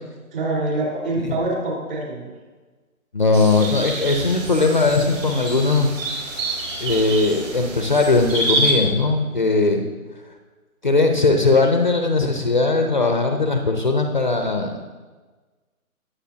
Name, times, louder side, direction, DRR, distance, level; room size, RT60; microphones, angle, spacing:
voice 1, 0.3-2.3, right 2 dB, 40° right, -2 dB, 4.1 m, -25 dB
voice 2, 3.1-5.9 6.8-9.8 10.8-14.7, left 3 dB, 35° left, 4 dB, 0.7 m, -19 dB
sound 1, 3.3-8.7, right 2 dB, 60° right, 3.6 m, -27 dB
20.0 x 8.0 x 2.8 m, 1.3 s
hypercardioid pair, 165°, 44 cm